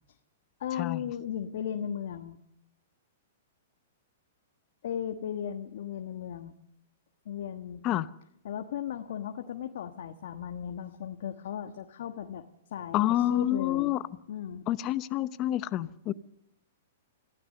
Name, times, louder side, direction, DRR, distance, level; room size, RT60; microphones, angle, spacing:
voice 1, 0.6-2.4 4.8-6.5 7.2-7.8 8.4-12.4 12.7-13.9 14.3-14.7, left 9 dB, 65° left, 1.3 m, -36 dB
voice 2, 12.9-14.0 14.7-16.1, left 13 dB, 35° left, 0.8 m, -28 dB
25.5 x 16.0 x 6.7 m
hypercardioid pair, 135°, 0 cm